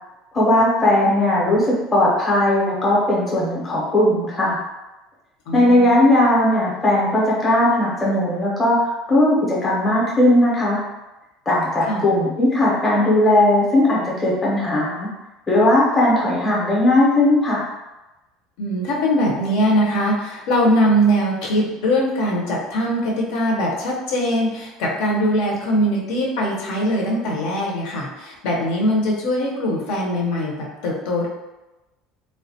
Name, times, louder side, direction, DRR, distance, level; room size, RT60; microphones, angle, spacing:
voice 1, 0.3-4.6 5.5-10.8 11.5-15.1 15.5-17.6, left 1 dB, 10° left, -6 dB, 0.7 m, -18 dB
voice 2, 5.5-5.9 11.8-12.0 18.6-31.3, equal, 70° left, -2 dB, 0.7 m, -21 dB
3.4 x 2.1 x 2.7 m, 1.0 s
cardioid pair, 175°, 0 cm